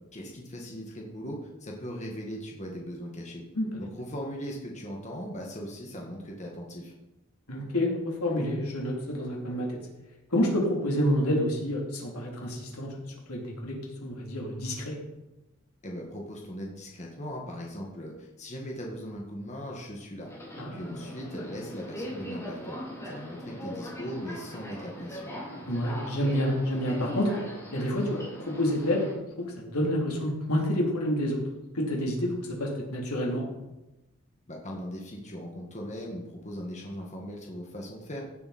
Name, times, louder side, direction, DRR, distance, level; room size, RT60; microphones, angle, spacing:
voice 1, 0.1-3.4 3.8-6.9 15.8-20.3 20.7-22.8 23.0-25.3 34.5-38.2, equal, 30° left, -1 dB, 1.9 m, -39 dB
voice 2, 3.6-3.9 7.5-9.8 10.3-12.9 13.3-15.0 20.6-21.0 21.4-21.5 25.7-27.3 27.7-29.1 29.4-31.4 31.7-32.3 32.6-33.4, equal, 90° left, -2 dB, 3.5 m, -28 dB
Subway metro underground, 20.2-29.1, equal, 15° left, 3.5 m, -40 dB
16.0 x 8.5 x 4.4 m, 1.0 s
head